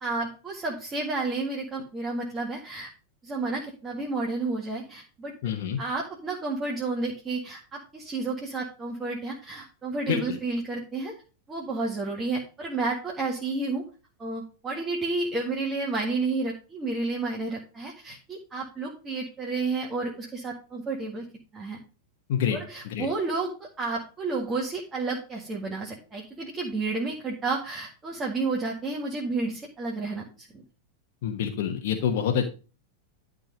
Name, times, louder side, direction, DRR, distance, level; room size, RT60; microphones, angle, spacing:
voice 1, 0.0-2.9 3.2-5.3 5.8-11.1 11.5-13.8 14.2-21.3 21.5-21.8 22.5-30.6, right 3 dB, 20° right, -2 dB, 1.8 m, -31 dB
voice 2, 5.4-5.8 10.1-10.4 22.3-22.6 22.8-23.1 31.2-32.5, left 8 dB, 50° left, 4 dB, 1.2 m, -27 dB
11.5 x 3.9 x 5.1 m, 0.34 s
figure-of-eight pair, 90°, 0 cm